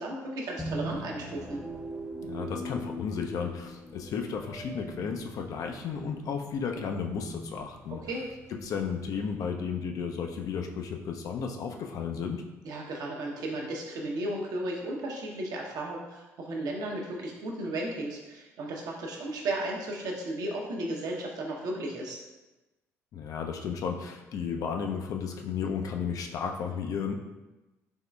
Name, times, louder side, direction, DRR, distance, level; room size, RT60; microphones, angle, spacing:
voice 1, 0.0-1.6 7.9-8.2 12.6-22.2, right 1 dB, 55° right, 0 dB, 0.7 m, -34 dB
sound 1, 0.6-9.3, equal, 10° right, 0.5 m, -41 dB
voice 2, 2.2-8.0 8.6-12.4 23.1-27.2, left 6 dB, 45° left, 4 dB, 0.4 m, -33 dB
3.7 x 3.5 x 2.2 m, 1.1 s
figure-of-eight pair, 45°, 8 cm